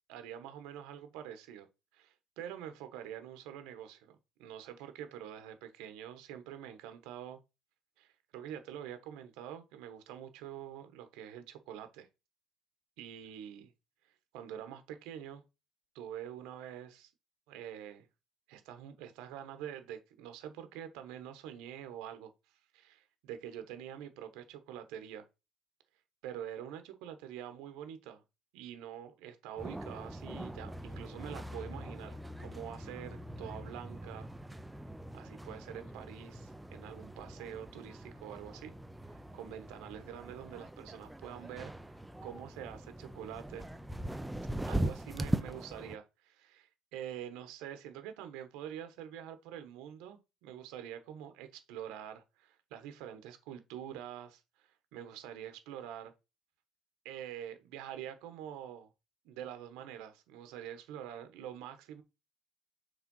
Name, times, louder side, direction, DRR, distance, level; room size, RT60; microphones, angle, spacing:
voice 1, 0.1-1.7 1.9-7.4 8.0-12.1 13.0-13.7 14.3-15.4 15.9-17.1 17.5-18.1 18.5-22.3 22.7-25.3 26.2-28.2 28.5-34.3 35.1-38.7 39.3-41.7 42.2-43.7 44.7-56.1 57.0-58.9 59.2-62.0, right 10 dB, 85° right, 1.4 m, -46 dB
sound 1, 29.6-46.0, right 1 dB, 5° right, 0.4 m, -41 dB
5.8 x 3.8 x 5.5 m
cardioid pair, 160°, 0 cm